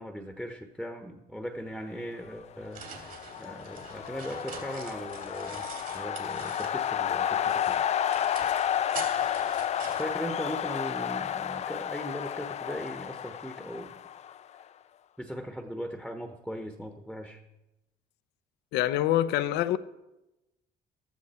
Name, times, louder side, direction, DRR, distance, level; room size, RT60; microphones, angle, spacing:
voice 1, 0.0-3.1 3.4-5.7 5.9-7.8 10.0-14.0 15.2-17.4, equal, ahead, 1.0 m, -38 dB
sound 1, 2.3-7.0 7.4-10.9, right 6 dB, 55° right, 2.8 m, -45 dB
sound 2, 2.7-14.6, left 9 dB, 40° left, 0.4 m, -31 dB
voice 2, 18.7-19.8, left 13 dB, 90° left, 0.7 m, -25 dB
14.5 x 12.5 x 4.3 m
cardioid pair, 110°, 17 cm